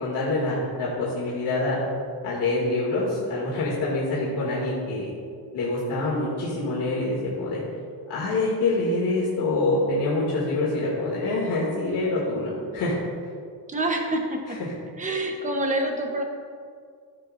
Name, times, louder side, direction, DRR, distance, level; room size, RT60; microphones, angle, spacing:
voice 1, 0.0-1.8 2.2-5.1 5.5-7.6 8.1-13.0 14.6-14.7, left 2 dB, 80° left, -7 dB, 2.3 m, -26 dB
voice 2, 13.7-14.6 15.0-16.2, right 1 dB, 20° right, 2 dB, 0.9 m, -26 dB
14.0 x 7.0 x 2.6 m, 2.2 s
cardioid pair, 170°, 41 cm